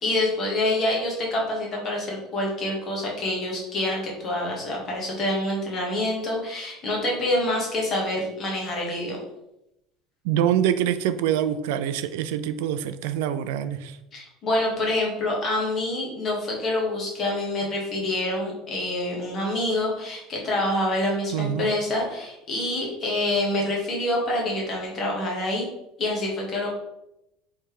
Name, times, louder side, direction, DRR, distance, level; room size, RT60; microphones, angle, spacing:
voice 1, 0.0-9.2 14.1-25.7 26.0-26.7, left 1 dB, 25° left, -2 dB, 1.2 m, -26 dB
voice 2, 10.2-14.0 21.3-21.7, right 10 dB, 85° right, 12 dB, 0.3 m, -25 dB
3.4 x 3.2 x 4.6 m, 0.87 s
cardioid pair, 175°, 0 cm